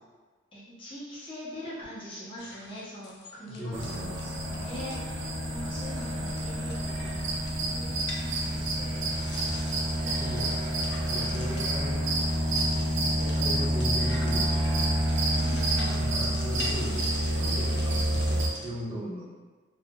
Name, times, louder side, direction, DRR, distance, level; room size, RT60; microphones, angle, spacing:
voice 1, 0.5-4.1 4.5-10.1 10.5-10.6 10.9-11.7 12.7-12.9 15.3-16.0, left 1 dB, 25° left, -8 dB, 0.7 m, -43 dB
sound 1, 2.4-5.0 5.4-5.6 5.9-18.7, left 2 dB, 60° left, 0.4 m, -45 dB
voice 2, 3.5-4.3 10.2-10.5 11.1-12.0 13.0-14.8 16.0-19.2, equal, 30° right, -11 dB, 0.9 m, -37 dB
sound 2, 3.7-18.5, right 1 dB, 80° right, 0.5 m, -28 dB
2.7 x 2.4 x 2.2 m, 1.3 s
head